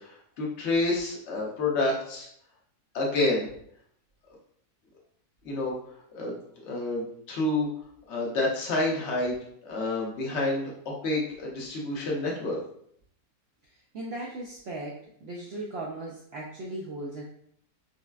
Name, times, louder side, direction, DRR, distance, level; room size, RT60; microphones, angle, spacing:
voice 1, 0.0-2.3 2.9-3.5 5.4-5.7 6.1-6.4 6.7-7.7 8.1-9.4 9.6-10.7 11.0-12.6, left 2 dB, 50° left, -3 dB, 1.1 m, -28 dB
voice 2, 13.9-17.2, right 2 dB, 70° right, -3 dB, 0.6 m, -37 dB
5.5 x 2.1 x 2.3 m, 0.67 s
omnidirectional pair, 1.6 m